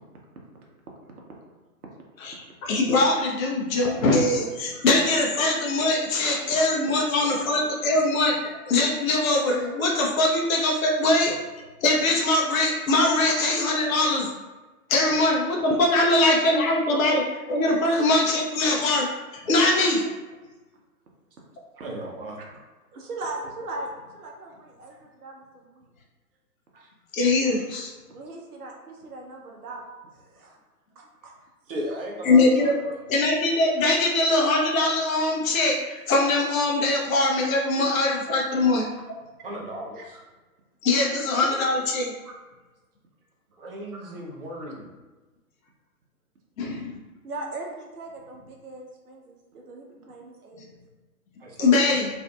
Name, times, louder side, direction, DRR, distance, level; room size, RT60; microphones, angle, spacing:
voice 1, 2.2-8.3 8.7-11.3 11.8-14.3 14.9-19.1 19.5-20.0 27.1-27.9 32.3-32.7 33.1-38.9 40.8-42.1 46.6-46.9 51.6-52.1, left 2 dB, 60° left, -1 dB, 0.6 m, -22 dB
voice 2, 21.8-22.4 24.9-25.0 26.7-26.9 31.7-33.0 39.4-40.2 43.6-44.9 51.4-52.1, right 1 dB, 40° right, -2 dB, 0.6 m, -36 dB
voice 3, 22.9-25.8 28.1-29.8 30.2-30.6 31.0-31.3 40.0-40.1 41.4-41.6 42.2-42.3 43.9-44.1 47.2-50.7, right 2 dB, 75° right, 0 dB, 0.7 m, -39 dB
2.5 x 2.5 x 2.2 m, 1.2 s
figure-of-eight pair, 125°, 46 cm